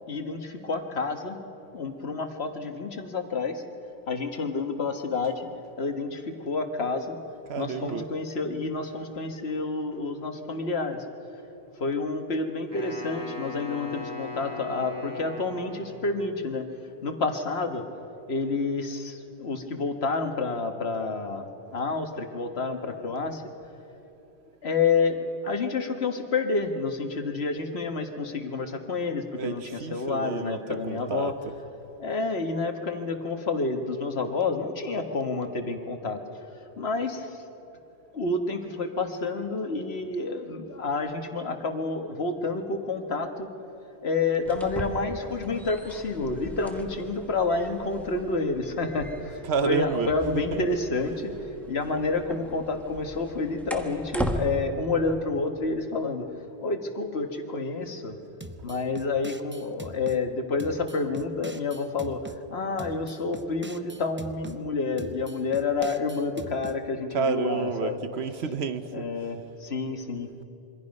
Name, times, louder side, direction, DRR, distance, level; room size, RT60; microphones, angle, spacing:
voice 1, 0.1-1.4 1.7-3.6 4.1-5.5 5.8-7.2 7.6-11.0 11.8-16.7 17.0-17.8 18.3-23.5 24.6-31.3 32.0-36.2 36.8-37.4 38.1-43.5 44.0-56.3 56.6-58.2 58.6-68.0 68.9-70.3, left 3 dB, 80° left, 1.7 m, -29 dB
voice 2, 7.5-8.1 29.3-31.6 49.2-50.7 67.1-69.0, right 6 dB, 85° right, 1.2 m, -30 dB
Wind instrument woodwind instrument, 12.7-16.2, left 3 dB, 45° right, 6.7 m, -38 dB
sound 1, 44.4-54.4, equal, ahead, 1.4 m, -38 dB
sound 2, 58.4-60.2 60.6-62.4 62.8-64.6 65.0-66.8, right 1 dB, 15° right, 0.5 m, -43 dB
26.5 x 24.0 x 5.4 m
omnidirectional pair, 1.1 m